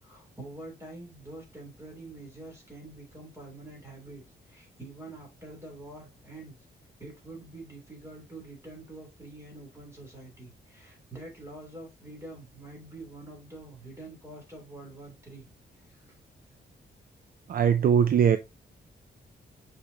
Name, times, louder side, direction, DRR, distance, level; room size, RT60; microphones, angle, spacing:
voice 1, 0.0-6.6 7.0-15.5 15.9-16.2, right 2 dB, 15° right, 3.1 m, -46 dB
voice 2, 17.5-18.4, right 8 dB, 55° right, 0.5 m, -21 dB
7.0 x 4.9 x 2.8 m
wide cardioid pair, 175°, 18 cm